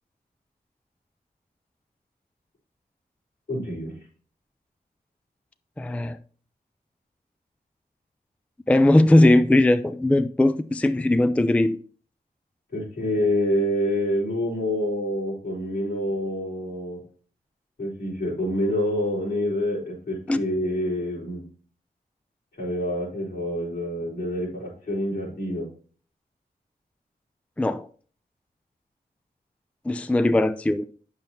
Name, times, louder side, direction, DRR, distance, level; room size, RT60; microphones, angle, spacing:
voice 1, 3.5-3.9 12.7-17.0 17.8-21.4 22.6-25.7, left 1 dB, 75° left, 4.4 m, -27 dB
voice 2, 5.8-6.2 8.7-11.8 20.3-20.4 27.6-27.9 29.9-30.9, left 1 dB, 10° left, 0.3 m, -19 dB
8.7 x 6.7 x 2.8 m
cardioid pair, 60°, 17 cm